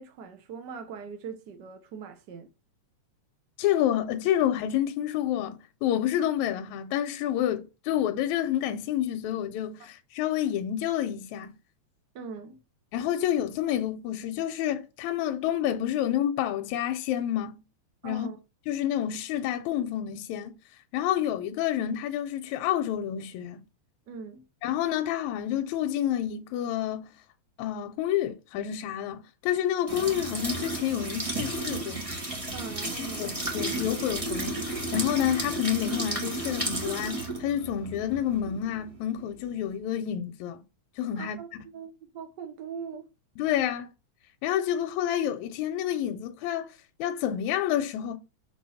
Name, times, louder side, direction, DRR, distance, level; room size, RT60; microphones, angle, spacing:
voice 1, 0.0-2.5 12.1-12.6 18.0-18.4 24.1-24.4 32.5-33.3 41.2-41.5 41.7-43.0, right 6 dB, 70° right, 1.0 m, -41 dB
voice 2, 3.6-11.5 12.9-17.6 18.0-18.3 18.7-20.5 20.9-23.6 24.6-27.1 27.6-32.1 33.0-40.6 41.0-41.4 43.4-43.9 44.4-46.7 47.0-48.2, left 11 dB, 80° left, 2.0 m, -29 dB
sound 1, 29.9-39.5, right 2 dB, 20° right, 0.9 m, -33 dB
6.0 x 3.5 x 5.4 m
omnidirectional pair, 3.4 m